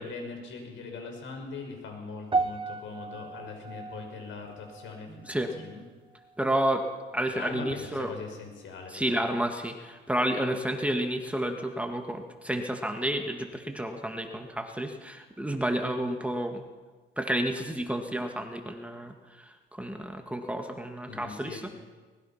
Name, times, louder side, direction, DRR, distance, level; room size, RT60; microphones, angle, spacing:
voice 1, 0.0-5.8 7.3-9.2 21.1-21.7, left 4 dB, 75° left, 3 dB, 6.0 m, -41 dB
sound 1, 2.3-6.7 7.0-7.4 8.0-8.1, right 3 dB, 25° right, 0.8 m, -36 dB
voice 2, 5.1-5.7 6.4-6.8 7.1-8.1 8.9-16.6 17.2-21.7, right 1 dB, 5° right, 4 dB, 2.1 m, -31 dB
23.5 x 20.0 x 5.9 m, 1.4 s
cardioid pair, 90°, 20 cm